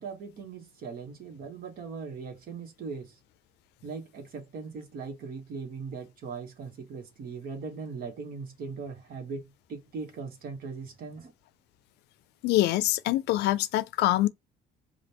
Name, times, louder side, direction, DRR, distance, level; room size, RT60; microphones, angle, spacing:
voice 1, 0.0-3.2 3.8-11.3, right 5 dB, 60° right, 1.3 m, -39 dB
voice 2, 12.4-14.3, left 16 dB, 85° left, 0.4 m, -24 dB
5.1 x 2.5 x 2.9 m
cardioid pair, 110°, 17 cm